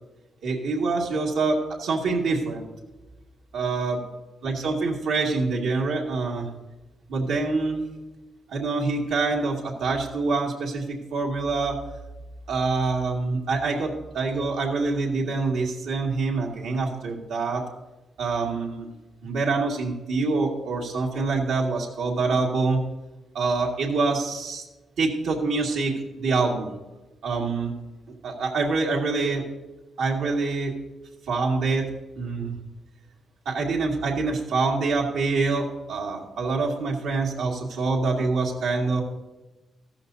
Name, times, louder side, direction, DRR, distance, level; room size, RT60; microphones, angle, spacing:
voice 1, 0.4-2.6 3.5-4.0 4.4-6.5 7.1-7.8 8.5-11.8 12.5-17.6 18.2-18.9 19.2-22.8 23.3-24.6 25.0-26.7 27.2-27.7 28.2-29.4 30.0-30.7 31.3-31.9 32.2-32.6 33.5-39.0, right 3 dB, 90° right, -2 dB, 2.2 m, -25 dB
14.5 x 13.0 x 2.7 m, 1.1 s
cardioid pair, 145°, 0 cm